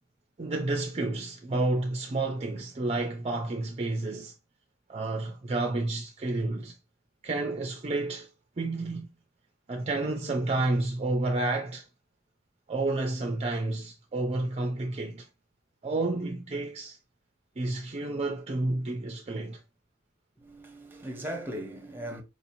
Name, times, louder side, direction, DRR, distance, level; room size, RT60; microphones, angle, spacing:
voice 1, 0.4-4.3 4.9-6.8 7.2-8.3 8.6-9.1 9.7-11.8 12.7-15.3 15.8-17.0 17.6-19.6, right 2 dB, 30° right, 0.4 m, -30 dB
voice 2, 20.4-22.2, right 1 dB, 10° right, 0.8 m, -38 dB
4.9 x 2.7 x 2.6 m
head